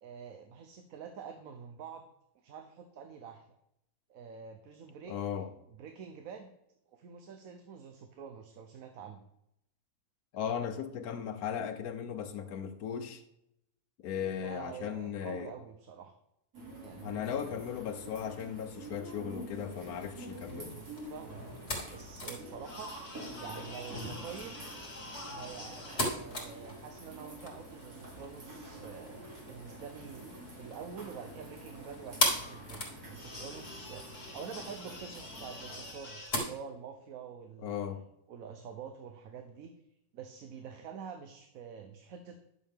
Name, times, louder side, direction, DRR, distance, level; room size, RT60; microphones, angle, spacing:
voice 1, 0.0-2.1 2.3-3.6 4.1-5.2 5.7-6.5 6.9-9.2 14.4-16.1 16.8-17.5 20.5-23.0 23.4-24.6 25.3-37.8 38.3-39.7 40.1-42.4, right 6 dB, 70° right, 1.1 m, -47 dB
voice 2, 5.1-5.5 10.3-13.2 14.0-15.5 17.0-20.7 37.6-38.0, left 8 dB, 80° left, 1.4 m, -37 dB
sound 1, 16.5-35.9, right 1 dB, 85° right, 3.0 m, -48 dB
sound 2, 19.5-36.4, left 1 dB, 40° left, 2.7 m, -40 dB
11.0 x 6.5 x 3.6 m
omnidirectional pair, 1.6 m